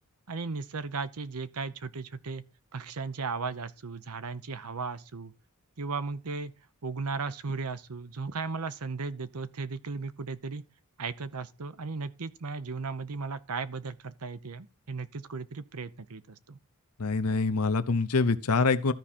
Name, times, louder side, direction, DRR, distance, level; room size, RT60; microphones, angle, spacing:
voice 1, 0.3-2.4 2.7-5.3 5.8-6.5 6.8-10.6 11.0-16.6, right 4 dB, 75° right, 0.8 m, -36 dB
voice 2, 17.0-18.9, left 4 dB, 75° left, 0.8 m, -25 dB
13.5 x 5.0 x 4.3 m
head